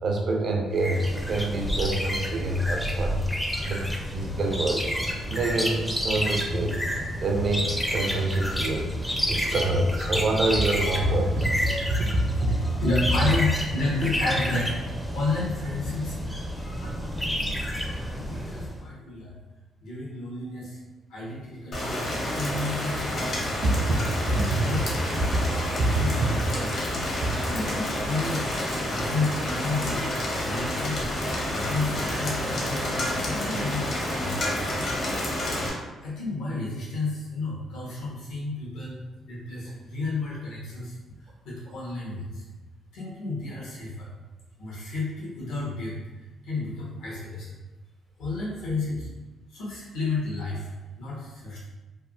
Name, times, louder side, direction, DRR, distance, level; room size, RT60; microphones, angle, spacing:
voice 1, 0.0-3.2 3.6-4.9 5.2-6.8 7.2-12.1 12.4-12.7 23.6-24.0 25.3-25.5 25.8-26.0 27.0-27.1 39.7-39.8, right 2 dB, 55° right, 2 dB, 0.4 m, -26 dB
sound 1, 0.8-18.8, equal, 5° left, 0.4 m, -30 dB
voice 2, 12.8-14.8 15.1-16.2 16.8-17.5 18.1-19.3 19.8-20.8 21.1-23.4 24.3-24.8 25.9-27.0 27.4-28.5 28.9-31.0 31.5-34.7 36.0-39.0 39.3-41.0 41.4-42.4 42.9-44.1 44.6-46.0 46.4-47.5 48.2-49.1 49.5-51.6, left 3 dB, 85° left, -7 dB, 1.1 m, -31 dB
Rain, 21.7-35.7, left 1 dB, 55° left, 0.8 m, -29 dB
3.3 x 2.1 x 2.5 m, 1.2 s
cardioid pair, 90°, 0 cm